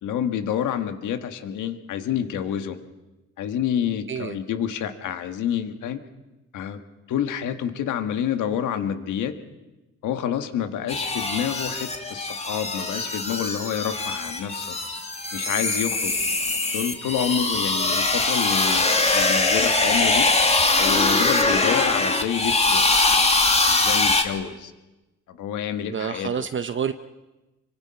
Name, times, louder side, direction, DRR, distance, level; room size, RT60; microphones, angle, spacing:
voice 1, 0.0-2.8 3.4-6.0 6.5-6.8 7.1-9.3 10.0-14.7 15.3-16.1 16.7-20.3 20.8-23.1 23.6-24.7 25.3-26.5, left 9 dB, 80° left, 8 dB, 1.7 m, -28 dB
sound 1, 10.9-24.2, left 3 dB, 20° left, 2.4 m, -22 dB
voice 2, 25.9-26.9, right 7 dB, 40° right, 9 dB, 0.8 m, -28 dB
25.5 x 24.0 x 5.8 m, 1.1 s
cardioid pair, 90°, 30 cm